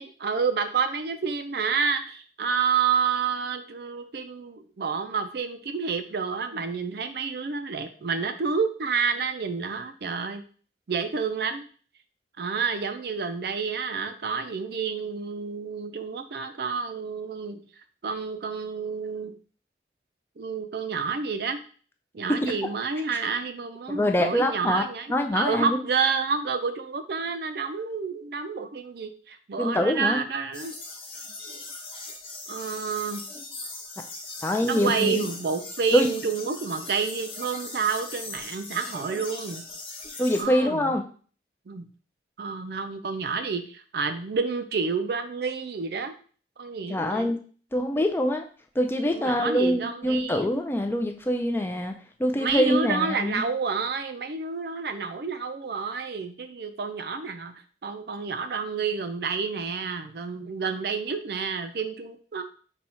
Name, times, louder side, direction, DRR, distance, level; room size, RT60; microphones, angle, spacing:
voice 1, 0.0-10.4 10.9-11.7 12.4-17.6 18.0-19.3 20.4-21.6 22.1-30.7 32.5-33.2 34.6-39.6 40.4-40.9 41.7-41.9 42.4-46.2 46.6-47.3 49.1-50.5 52.4-57.5 57.8-62.4, right 5 dB, 60° right, 9 dB, 0.4 m, -29 dB
voice 2, 23.9-24.8 25.1-25.8 29.6-30.2 34.4-35.3 35.9-36.1 40.2-41.0 46.9-47.4 47.7-48.4 48.8-51.9 52.2-53.4, equal, 10° left, 4 dB, 0.3 m, -24 dB
sound 1, 30.5-40.4, left 3 dB, 30° left, 0.9 m, -40 dB
4.1 x 2.3 x 4.2 m, 0.41 s
head